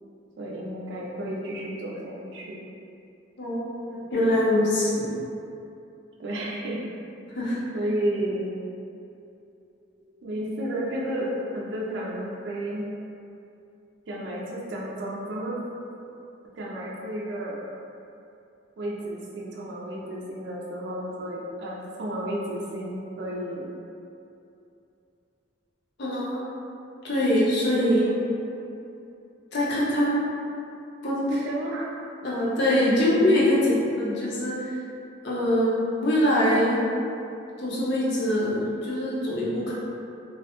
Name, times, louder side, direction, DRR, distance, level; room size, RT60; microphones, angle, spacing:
voice 1, 0.4-2.6 6.2-6.8 7.7-8.6 10.2-12.9 14.1-15.6 16.5-17.7 18.8-23.7 27.9-28.1 28.7-28.8 31.3-31.9 33.2-33.4, right 1 dB, 60° right, -4 dB, 0.4 m, -32 dB
voice 2, 3.4-5.1 7.3-7.6 26.0-26.4 27.0-28.1 29.5-30.2 31.0-31.2 32.2-33.6 34.0-34.5 35.2-36.8 37.6-39.7, left 1 dB, 60° left, -7 dB, 0.6 m, -23 dB
2.3 x 2.1 x 2.8 m, 2.7 s
head